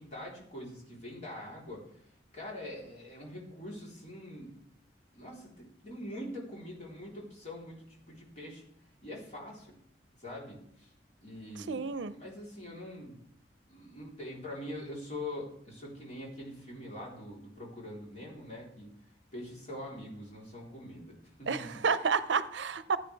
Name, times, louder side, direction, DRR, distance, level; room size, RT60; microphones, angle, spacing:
voice 1, 0.0-2.0 2.3-4.6 5.1-8.6 9.0-9.7 10.2-10.9 11.2-13.2 13.7-18.9 19.3-21.7, left 1 dB, 40° left, -3 dB, 3.8 m, -44 dB
voice 2, 11.6-12.1 21.5-23.0, right 5 dB, 80° right, 14 dB, 0.6 m, -30 dB
15.0 x 9.1 x 3.5 m, 0.69 s
head